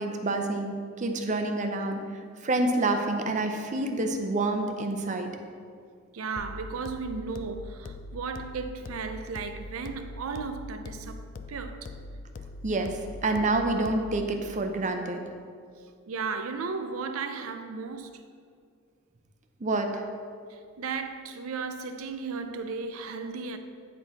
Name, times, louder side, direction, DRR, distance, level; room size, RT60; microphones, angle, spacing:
voice 1, 0.0-5.3 12.6-15.2 19.6-20.1, right 2 dB, 35° right, 0.6 m, -28 dB
voice 2, 6.1-11.9 16.1-18.2 20.5-23.6, right 4 dB, 90° right, 0.5 m, -35 dB
sound 1, 6.4-14.4, left 2 dB, 40° left, 0.3 m, -42 dB
9.0 x 4.4 x 3.9 m
head